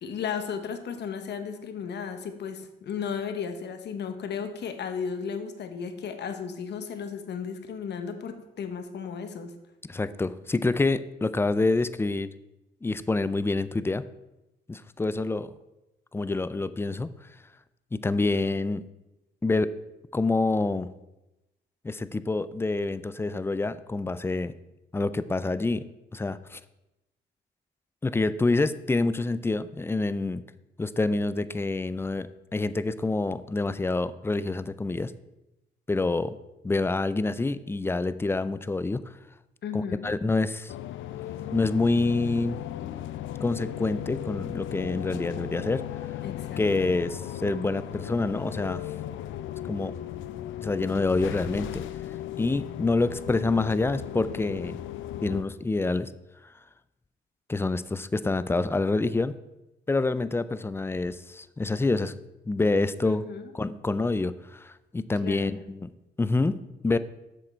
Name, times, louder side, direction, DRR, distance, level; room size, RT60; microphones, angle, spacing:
voice 1, 0.0-9.6 39.6-40.1 46.2-46.9 63.0-63.5 65.2-65.6, left 6 dB, 60° left, 8 dB, 1.0 m, -35 dB
voice 2, 9.9-12.3 12.8-14.0 14.7-15.5 16.1-17.1 17.9-18.8 19.4-19.7 20.1-20.9 21.8-24.5 24.9-26.6 28.0-30.4 30.8-35.1 35.9-36.4 36.6-39.0 39.7-40.7 41.5-42.6 43.4-45.8 46.6-48.8 49.7-49.9 50.6-51.8 52.4-54.8 55.2-56.1 57.5-59.3 59.9-62.1 62.5-63.2 63.5-65.9 66.2-67.0, left 3 dB, 10° left, 15 dB, 0.4 m, -27 dB
sound 1, 40.7-55.4, left 12 dB, 75° left, 0.5 m, -36 dB
7.6 x 6.5 x 4.4 m, 0.97 s
cardioid pair, 90°, 20 cm